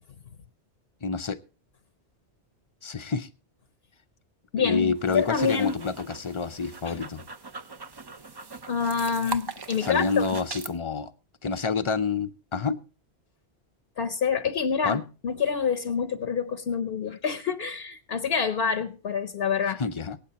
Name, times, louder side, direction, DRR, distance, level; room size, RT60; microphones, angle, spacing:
voice 1, 1.0-1.4 2.8-3.3 4.6-7.2 9.8-11.1 11.4-12.8 14.8-15.0 19.8-20.2, left 5 dB, 35° left, 0.5 m, -28 dB
voice 2, 4.5-5.8 6.9-7.0 8.7-10.3 14.0-19.8, left 6 dB, 65° left, 0.9 m, -27 dB
sound 1, 5.0-10.7, right 3 dB, 30° right, 0.5 m, -40 dB
23.5 x 9.1 x 2.9 m
omnidirectional pair, 1.1 m